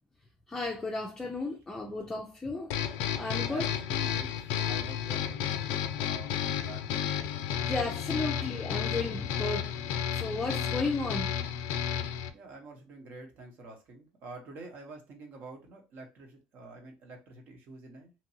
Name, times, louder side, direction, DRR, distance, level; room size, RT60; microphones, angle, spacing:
voice 1, 0.5-2.7 3.2-3.7 7.7-9.7 10.1-11.3, left 3 dB, 15° left, 0.5 m, -33 dB
sound 1, 2.7-12.3, left 9 dB, 75° left, 0.4 m, -32 dB
voice 2, 3.5-5.6 6.0-7.1 12.3-18.1, right 2 dB, 55° right, 1.0 m, -47 dB
2.9 x 2.6 x 2.7 m
supercardioid pair, 115°, 4 cm